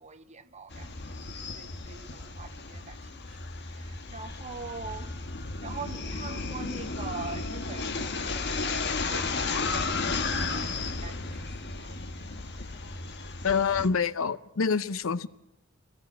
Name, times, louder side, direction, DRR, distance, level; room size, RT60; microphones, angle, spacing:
voice 1, 0.0-5.1 5.6-12.0, right 4 dB, 35° right, 1.0 m, -44 dB
sound 1, 0.7-13.9, left 3 dB, 60° left, 1.4 m, -34 dB
voice 2, 13.4-15.3, left 5 dB, 85° left, 0.7 m, -26 dB
21.5 x 17.0 x 7.4 m
head